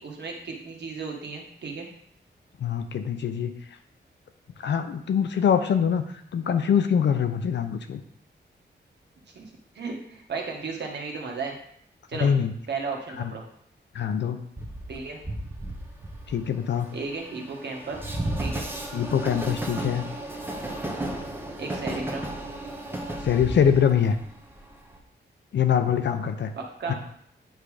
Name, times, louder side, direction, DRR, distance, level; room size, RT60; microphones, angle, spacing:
voice 1, 0.0-1.9 9.3-11.6 12.1-12.3 12.7-13.4 14.9-15.2 16.9-18.0 18.4-18.7 21.6-22.3 26.5-26.9, right 4 dB, 70° right, 1 dB, 1.5 m, -34 dB
voice 2, 2.6-3.5 4.6-8.0 12.2-12.5 13.2-13.3 13.9-14.4 16.3-16.9 18.9-20.1 23.2-24.2 25.5-26.5 26.9-27.0, left 8 dB, 75° left, 8 dB, 0.7 m, -24 dB
Train, 14.6-25.0, right 1 dB, 10° right, 0.9 m, -34 dB
9.1 x 3.7 x 4.9 m, 0.68 s
wide cardioid pair, 160°, 18 cm